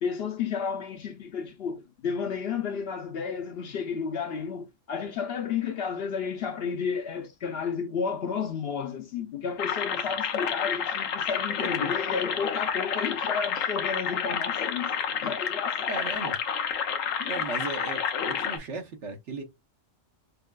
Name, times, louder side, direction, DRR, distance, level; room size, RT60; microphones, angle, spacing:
voice 1, 0.0-14.9 15.2-16.0 17.2-17.3, left 6 dB, 60° left, 0.7 m, -32 dB
sound 1, 9.6-18.6, left 7 dB, 90° left, 1.1 m, -30 dB
voice 2, 15.9-16.3 17.3-19.4, right 3 dB, 65° right, 1.2 m, -36 dB
5.7 x 2.4 x 2.3 m
omnidirectional pair, 1.3 m